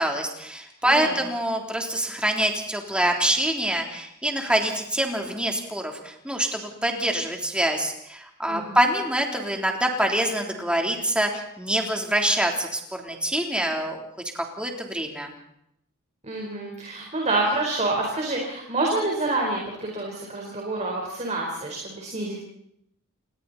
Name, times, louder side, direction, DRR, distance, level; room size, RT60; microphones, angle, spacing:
voice 1, 0.0-14.0 14.3-15.3, right 1 dB, 5° right, 2 dB, 3.5 m, -25 dB
voice 2, 0.9-1.2 8.5-8.8 16.2-22.4, right 2 dB, 30° right, -1 dB, 4.6 m, -27 dB
29.5 x 21.0 x 4.3 m, 0.76 s
head